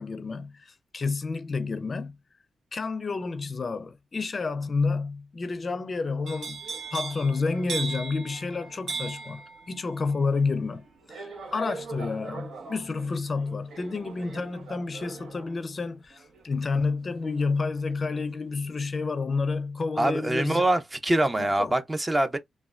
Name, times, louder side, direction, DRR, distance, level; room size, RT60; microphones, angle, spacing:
voice 1, 0.0-2.2 2.7-6.6 6.9-9.4 9.7-20.7 21.4-21.7, left 4 dB, 40° left, 0.5 m, -30 dB
sound 1, 6.3-18.2 18.6-19.0, right 4 dB, 75° right, 0.9 m, -40 dB
voice 2, 20.0-22.4, right 1 dB, 20° right, 0.6 m, -24 dB
3.2 x 2.2 x 2.4 m
cardioid pair, 80°, 0 cm